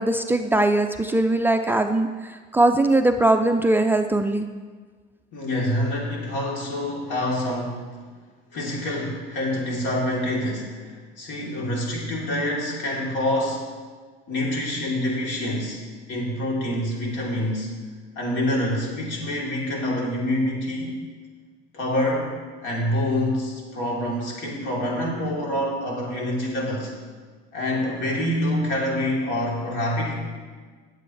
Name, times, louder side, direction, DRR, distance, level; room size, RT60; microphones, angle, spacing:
voice 1, 0.0-4.5, right 2 dB, 10° right, 5 dB, 0.4 m, -21 dB
voice 2, 5.3-8.0 8.5-13.7 14.3-15.8 16.1-17.7 18.1-21.0 21.7-22.3 22.6-26.9 27.5-30.1, left 1 dB, 65° left, -3 dB, 3.5 m, -26 dB
19.0 x 7.8 x 3.3 m, 1.5 s
cardioid pair, 130°, 21 cm